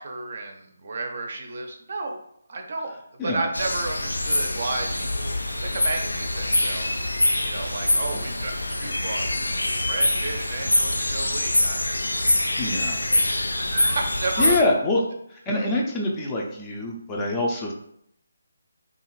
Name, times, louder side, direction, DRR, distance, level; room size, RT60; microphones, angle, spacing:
voice 1, 0.0-2.2 2.5-6.9 7.4-9.4 9.9-12.0 13.1-14.6, right 3 dB, 50° right, 4 dB, 0.5 m, -32 dB
sound 1, 3.5-14.6, left 1 dB, 85° left, 0.3 m, -24 dB
voice 2, 12.6-13.0 14.4-15.0 15.3-17.7, left 2 dB, 15° left, -1 dB, 0.5 m, -25 dB
2.6 x 2.4 x 3.0 m, 0.72 s
figure-of-eight pair, 150°, 0 cm